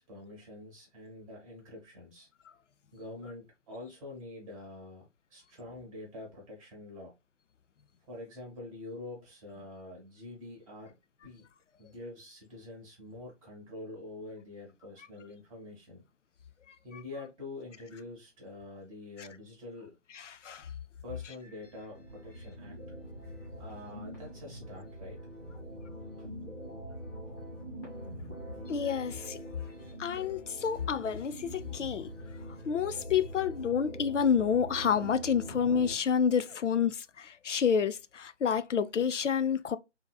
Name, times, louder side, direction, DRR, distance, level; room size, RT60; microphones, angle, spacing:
voice 1, 0.0-2.3 2.9-7.1 8.1-11.0 11.2-11.4 11.8-16.0 16.8-19.9 21.0-22.8 23.6-25.2 26.2-26.3, left 2 dB, 10° right, 1.0 m, -46 dB
voice 2, 20.1-20.7 28.7-29.4 30.0-32.1 32.7-39.8, left 7 dB, 75° left, 0.5 m, -29 dB
sound 1, 21.3-35.9, equal, 15° left, 1.3 m, -44 dB
3.8 x 2.8 x 2.2 m
figure-of-eight pair, 145°, 37 cm